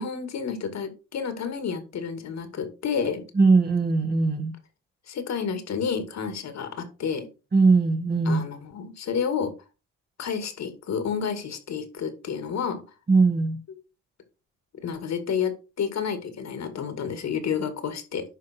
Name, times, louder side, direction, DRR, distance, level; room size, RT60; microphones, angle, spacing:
voice 1, 0.0-3.2 5.1-7.3 8.2-9.5 10.2-12.8 14.7-15.5 15.8-18.2, left 6 dB, 60° left, 2.3 m, -30 dB
voice 2, 3.4-4.5 7.5-8.4 13.1-13.6, right 4 dB, 30° right, 1.9 m, -20 dB
11.0 x 3.8 x 4.5 m
cardioid pair, 90°, 30 cm